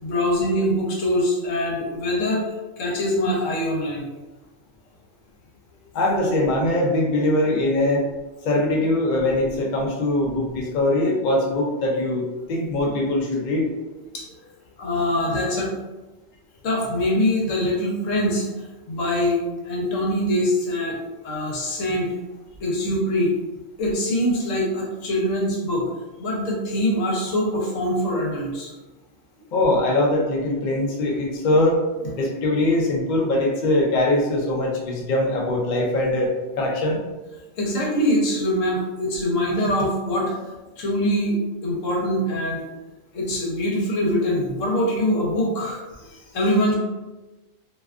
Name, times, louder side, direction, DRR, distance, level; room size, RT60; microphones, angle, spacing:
voice 1, 0.0-2.4 2.8-4.0 14.1-14.2 14.8-15.7 16.6-21.0 21.2-22.1 22.6-23.3 23.8-25.9 26.2-28.7 37.6-40.5 40.8-42.6 43.1-46.7, left 1 dB, 75° left, -3 dB, 1.1 m, -23 dB
voice 2, 5.9-8.0 8.4-13.7 29.5-31.8 32.1-36.3 36.6-37.0, left 1 dB, 60° left, -1 dB, 0.5 m, -22 dB
2.5 x 2.2 x 2.3 m, 1.1 s
omnidirectional pair, 1.3 m